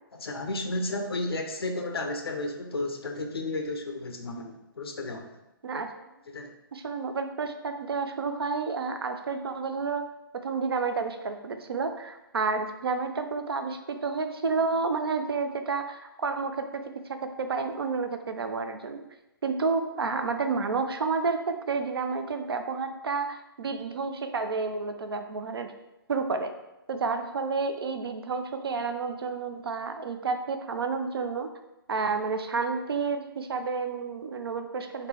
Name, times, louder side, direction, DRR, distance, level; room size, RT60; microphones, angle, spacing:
voice 1, 0.1-5.4 6.3-6.5, left 2 dB, 90° left, 4 dB, 0.5 m, -33 dB
voice 2, 6.7-10.0 10.3-19.0 19.4-25.7 26.1-26.5 26.9-31.5 31.9-35.1, right 4 dB, 85° right, 7 dB, 0.4 m, -30 dB
3.8 x 2.2 x 3.3 m, 0.95 s
hypercardioid pair, 135°, 12 cm